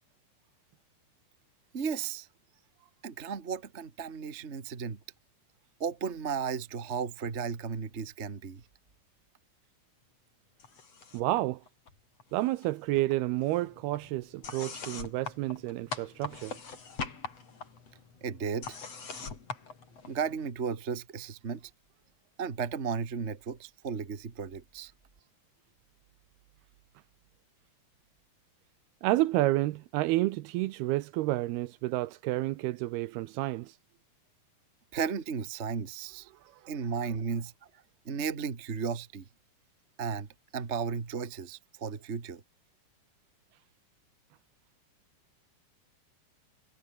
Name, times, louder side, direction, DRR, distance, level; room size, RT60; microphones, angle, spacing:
voice 1, 1.7-2.3 3.0-5.0 5.8-8.6 18.2-18.8 20.1-21.7 22.4-24.9 34.9-36.3 36.7-37.5 38.0-39.2 40.0-40.3 40.5-42.4, right 6 dB, 60° right, 0.7 m, -34 dB
sound 1, 10.6-11.4 11.7-12.7 13.0-20.5, left 5 dB, 40° left, 4.9 m, -43 dB
voice 2, 11.1-11.6 12.3-16.6 29.0-33.7 36.5-36.6, right 17 dB, 80° right, 2.6 m, -30 dB
omnidirectional pair, 4.8 m